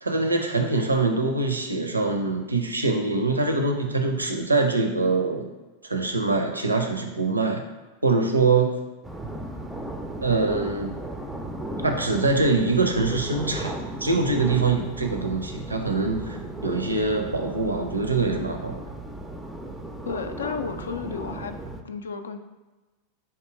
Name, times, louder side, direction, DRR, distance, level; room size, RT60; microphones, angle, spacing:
voice 1, 0.0-5.5 5.8-7.6 8.0-8.7 10.2-10.9 11.8-16.4 16.6-18.8, right 3 dB, 80° right, 4 dB, 0.5 m, -24 dB
sound 1, 9.0-21.8, right 1 dB, 5° right, 0.4 m, -36 dB
voice 2, 20.0-21.6 21.8-22.4, left 5 dB, 70° left, 8 dB, 0.3 m, -32 dB
3.6 x 2.7 x 4.7 m, 1.2 s
figure-of-eight pair, 90°, 0 cm